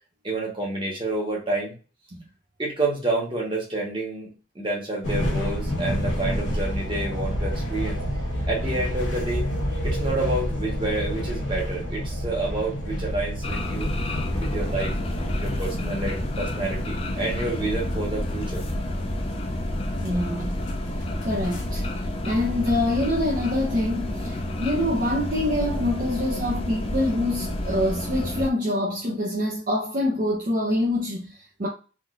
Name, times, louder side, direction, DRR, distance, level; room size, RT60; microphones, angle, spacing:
voice 1, 0.2-1.7 2.6-8.0 8.5-9.5 9.8-13.9 14.4-14.9 15.4-18.6, right 2 dB, 25° right, 1.2 m, -29 dB
sound 1, 5.0-22.0, equal, 85° left, 1.0 m, -30 dB
sound 2, 13.4-28.5, left 1 dB, 30° left, 0.4 m, -30 dB
voice 2, 20.0-20.6 21.2-21.8 22.2-31.7, left 1 dB, 45° right, 0.6 m, -25 dB
3.7 x 2.6 x 2.4 m
head